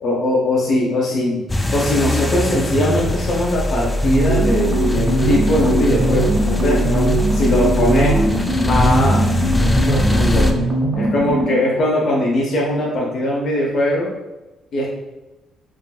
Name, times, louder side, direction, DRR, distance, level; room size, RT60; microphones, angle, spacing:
voice 1, 0.0-1.4 1.7-8.3 8.6-9.3 9.9-10.5 10.9-14.1 14.7-14.9, left 1 dB, 60° left, -3 dB, 0.6 m, -20 dB
sound 1, 1.5-10.5, left 1 dB, 15° left, 0.3 m, -20 dB
sound 2, 4.0-11.7, right 2 dB, 55° right, 0.8 m, -21 dB
3.5 x 2.5 x 2.2 m, 1.0 s
cardioid pair, 90°, 0 cm